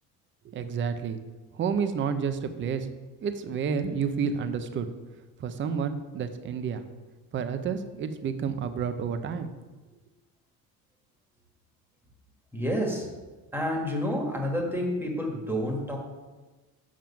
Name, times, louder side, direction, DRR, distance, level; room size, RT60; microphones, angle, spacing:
voice 1, 0.4-1.2 1.5-2.9 3.2-4.9 5.4-6.8 7.3-9.5, right 6 dB, 30° right, 9 dB, 0.6 m, -30 dB
voice 2, 12.5-13.1 13.5-16.0, equal, 5° right, 1 dB, 1.5 m, -29 dB
7.5 x 7.3 x 5.7 m, 1.2 s
cardioid pair, 165°, 38 cm